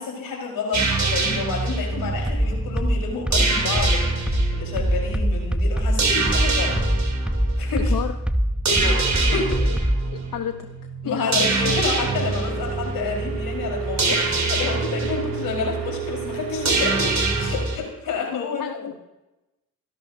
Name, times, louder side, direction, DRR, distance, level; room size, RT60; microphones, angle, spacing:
voice 1, 0.0-6.8 7.6-8.0 8.7-9.6 11.0-18.9, left 4 dB, 90° left, 0 dB, 4.5 m, -29 dB
sound 1, 0.7-17.8, right 3 dB, 50° right, 3.1 m, -25 dB
sound 2, 2.3-10.1, equal, 5° right, 0.7 m, -22 dB
voice 2, 7.7-8.1 9.2-9.3 10.1-10.7 11.1-11.5 18.3-18.9, left 9 dB, 70° left, 7 dB, 0.9 m, -31 dB
sound 3, 11.8-17.5, right 9 dB, 85° right, 3.3 m, -33 dB
24.5 x 11.5 x 2.7 m, 0.99 s
cardioid pair, 65°, 34 cm